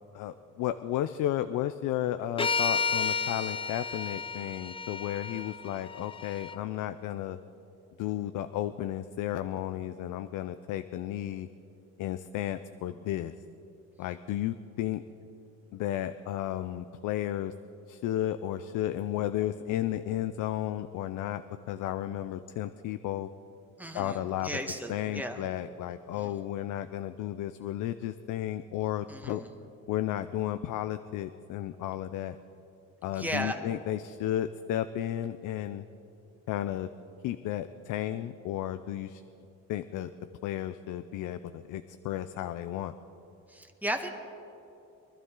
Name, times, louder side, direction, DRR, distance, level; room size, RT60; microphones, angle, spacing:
voice 1, 0.1-7.4 8.0-11.5 12.0-13.3 14.0-15.0 15.7-17.5 17.9-23.3 23.9-24.6 24.9-29.4 29.9-32.4 33.0-35.9 36.5-36.9 37.2-39.2 39.7-40.1 40.4-42.9, left 12 dB, 85° left, 11 dB, 0.5 m, -33 dB
sound 1, 2.4-6.6, left 5 dB, 20° left, 0.5 m, -32 dB
voice 2, 23.8-25.4 26.2-26.4 29.1-29.5 33.1-33.6 43.5-44.2, equal, 5° right, 5 dB, 1.3 m, -35 dB
23.5 x 12.0 x 3.7 m, 2.8 s
cardioid pair, 90°, 30 cm